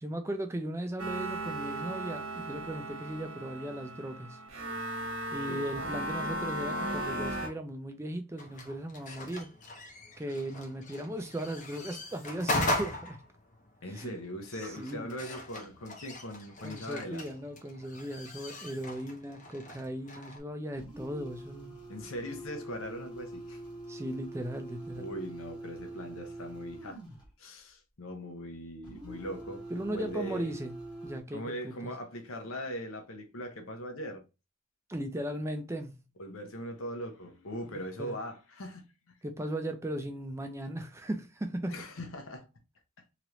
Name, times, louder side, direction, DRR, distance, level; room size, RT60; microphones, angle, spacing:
voice 1, 0.0-4.4 5.3-9.5 10.2-13.2 13.9-14.2 14.5-15.1 16.6-21.8 23.9-25.0 29.7-30.7 31.0-31.9 34.9-36.0 37.7-38.2 39.2-41.8, right 1 dB, 15° right, 0.4 m, -37 dB
sound 1, 1.0-7.5, right 1 dB, 80° right, 1.2 m, -36 dB
sound 2, 8.4-20.4, left 1 dB, 35° left, 0.7 m, -39 dB
voice 2, 13.8-17.2 21.9-23.6 25.0-27.0 27.4-30.5 31.3-34.2 36.2-39.1 41.7-42.5, equal, 80° left, 0.8 m, -40 dB
sound 3, 20.8-27.3 28.8-31.2, right 2 dB, 20° left, 1.1 m, -44 dB
3.0 x 2.5 x 3.0 m
head